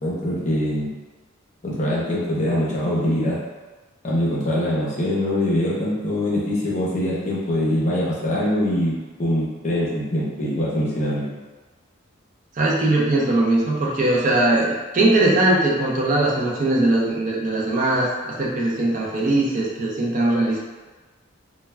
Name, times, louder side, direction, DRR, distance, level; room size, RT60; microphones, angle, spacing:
voice 1, 0.0-0.9 1.6-3.4 4.0-11.3, left 1 dB, 35° left, -6 dB, 0.7 m, -23 dB
voice 2, 12.6-20.6, right 2 dB, 35° right, -4 dB, 0.4 m, -20 dB
2.2 x 2.2 x 3.2 m, 1.3 s
head